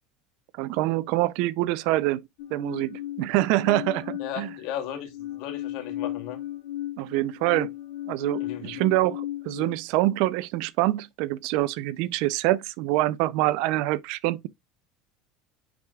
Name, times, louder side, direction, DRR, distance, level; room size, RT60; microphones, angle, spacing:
voice 1, 0.6-4.5 7.0-7.7 8.1-14.5, right 17 dB, 65° right, 0.5 m, -25 dB
sound 1, 2.4-4.7 5.1-9.8, left 13 dB, 80° left, 2.3 m, -36 dB
voice 2, 4.2-6.4 8.4-8.8, left 10 dB, 65° left, 2.7 m, -36 dB
10.0 x 4.8 x 2.4 m
supercardioid pair, 135°, 0 cm